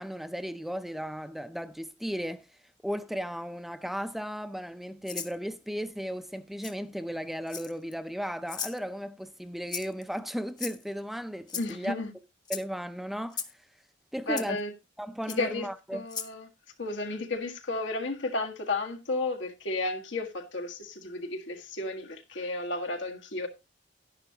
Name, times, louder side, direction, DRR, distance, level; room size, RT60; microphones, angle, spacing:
voice 1, 0.0-2.6 2.8-12.0 12.5-13.4 14.1-14.6 15.0-16.0, equal, ahead, 0.5 m, -35 dB
Rattle (instrument), 5.0-5.3 6.6-6.7 7.5-7.9 8.5-8.8 9.7-10.0 10.6-11.0 11.5-11.7 12.4-12.6 13.3-13.5 14.4-14.5 15.3-15.4 16.1-16.3, left 7 dB, 20° left, 0.8 m, -37 dB
voice 2, 11.6-12.1 14.3-14.7 15.4-15.7 15.9-16.5 16.8-23.5, left 2 dB, 85° left, 1.7 m, -33 dB
10.5 x 10.5 x 2.9 m
head